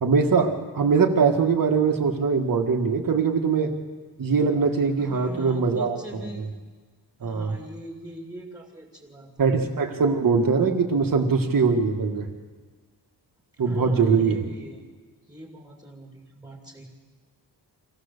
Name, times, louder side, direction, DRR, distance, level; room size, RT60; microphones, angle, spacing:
voice 1, 0.0-3.7 4.2-6.5 7.2-7.6 9.4-12.3 13.6-14.4, right 5 dB, 50° right, 4 dB, 1.7 m, -22 dB
voice 2, 5.0-6.5 7.2-9.7 13.6-14.8 15.3-16.8, equal, 10° right, -1 dB, 2.3 m, -41 dB
25.0 x 16.0 x 6.7 m, 1.5 s
wide cardioid pair, 170°, 41 cm